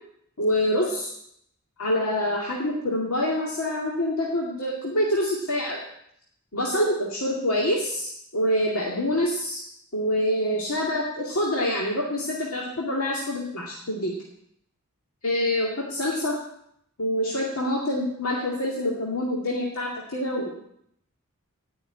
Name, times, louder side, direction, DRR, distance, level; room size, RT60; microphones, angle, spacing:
voice 1, 0.4-1.1 1.8-5.8 6.5-9.6 9.9-14.1 15.2-16.4 17.0-20.5, left 1 dB, 70° left, -3 dB, 2.4 m, -26 dB
17.5 x 6.4 x 8.9 m, 0.74 s
head